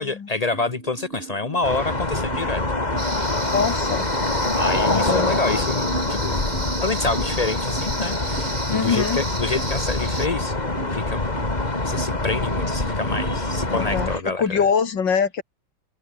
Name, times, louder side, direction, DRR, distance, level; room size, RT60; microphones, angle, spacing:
voice 1, 0.0-2.6 4.6-6.4 6.8-10.5 10.9-11.3 11.8-14.4, left 3 dB, 75° left, 0.3 m, -27 dB
sound 1, 0.5-14.3, right 5 dB, 85° right, 4.4 m, -39 dB
sound 2, 1.6-14.2, left 2 dB, 20° left, 2.6 m, -25 dB
sound 3, 3.0-10.3, right 2 dB, 60° right, 7.9 m, -34 dB
voice 2, 3.5-4.1 4.8-5.3 8.7-9.2 13.7-15.4, left 6 dB, 60° left, 3.0 m, -23 dB
omnidirectional pair, 2.3 m